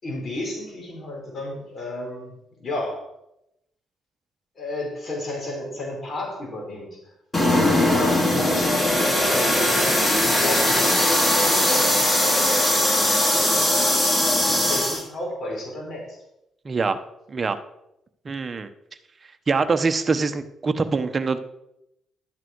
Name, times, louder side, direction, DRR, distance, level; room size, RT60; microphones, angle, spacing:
voice 1, 0.0-3.1 4.5-7.1 7.5-13.9 14.5-16.2, left 1 dB, 45° left, -1 dB, 5.0 m, -33 dB
sound 1, 7.3-15.0, left 1 dB, 25° left, 3.0 m, -20 dB
voice 2, 16.6-17.0 17.3-17.6 18.2-18.7 19.5-21.4, right 4 dB, 35° right, 9 dB, 1.0 m, -24 dB
12.5 x 9.0 x 4.7 m, 0.83 s
cardioid pair, 90°, 0 cm